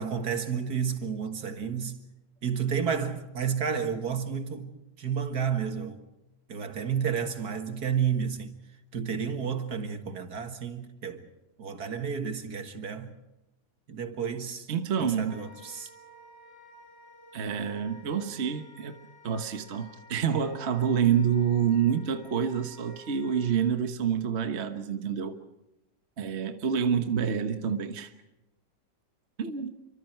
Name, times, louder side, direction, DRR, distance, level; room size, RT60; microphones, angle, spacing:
voice 1, 0.0-2.0 2.4-6.0 6.5-8.5 8.9-11.3 11.6-13.1 13.9-14.7 15.0-15.9, right 7 dB, 60° right, 2.1 m, -31 dB
voice 2, 14.7-15.3 17.3-19.0 19.2-25.4 26.2-28.1 29.4-29.7, right 7 dB, 40° right, 1.3 m, -27 dB
Wind instrument woodwind instrument, 15.3-23.6, equal, 10° right, 3.3 m, -53 dB
28.5 x 25.0 x 4.5 m
omnidirectional pair, 1.9 m